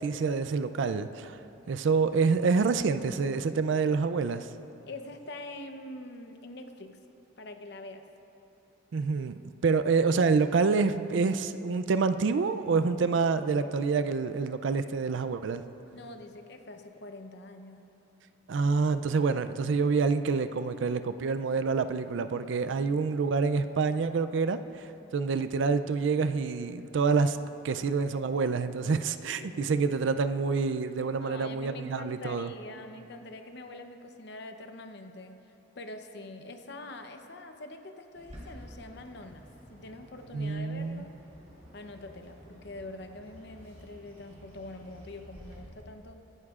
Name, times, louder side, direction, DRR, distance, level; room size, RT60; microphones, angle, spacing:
voice 1, 0.0-1.4 1.7-4.5 8.9-15.6 18.5-27.4 27.6-32.5 40.3-41.0, right 4 dB, 70° right, 10 dB, 0.4 m, -27 dB
voice 2, 4.8-7.0 7.4-8.0 15.9-17.8 22.8-23.1 29.2-30.0 31.2-35.4 35.8-39.4 39.7-41.1 41.7-46.2, left 2 dB, 55° left, 6 dB, 0.8 m, -44 dB
Bird, 38.1-45.6, equal, 35° right, 3.0 m, -51 dB
23.5 x 11.0 x 2.4 m, 2.9 s
head